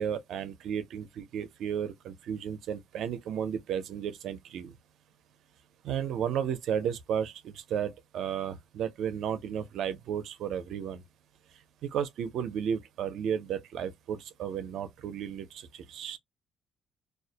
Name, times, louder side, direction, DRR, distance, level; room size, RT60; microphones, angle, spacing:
voice 1, 0.0-4.7 5.8-11.0 11.8-16.2, right 8 dB, 65° right, 0.5 m, -33 dB
2.3 x 2.1 x 2.6 m
cardioid pair, 150°, 0 cm